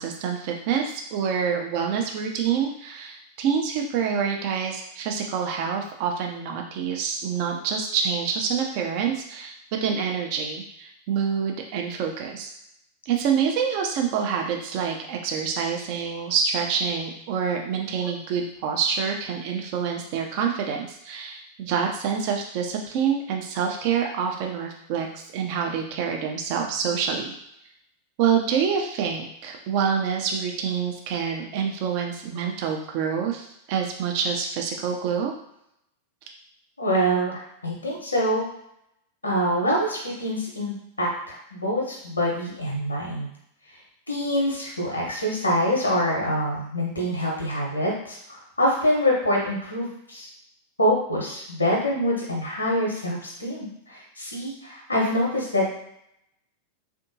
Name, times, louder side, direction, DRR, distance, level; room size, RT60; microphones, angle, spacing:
voice 1, 0.0-9.5 9.8-12.5 13.1-27.3 28.2-35.3, right 7 dB, 45° right, 2 dB, 0.6 m, -27 dB
voice 2, 36.8-38.5 39.2-43.3 44.1-50.3 50.8-55.8, equal, 80° left, -2 dB, 1.0 m, -25 dB
3.6 x 2.6 x 2.7 m, 0.76 s
figure-of-eight pair, 90°, 0 cm